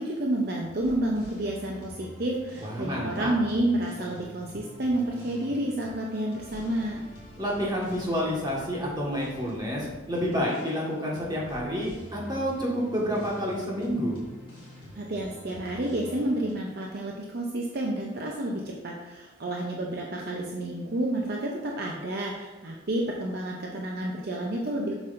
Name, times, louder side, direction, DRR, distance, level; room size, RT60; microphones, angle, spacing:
voice 1, 0.0-7.0 15.0-24.9, right 1 dB, 50° right, -1 dB, 0.7 m, -30 dB
sound 1, 0.5-16.5, equal, 25° left, 2.2 m, -47 dB
voice 2, 2.6-3.3 7.4-14.2, equal, 20° right, -4 dB, 1.6 m, -29 dB
7.4 x 6.1 x 2.6 m, 1.1 s
head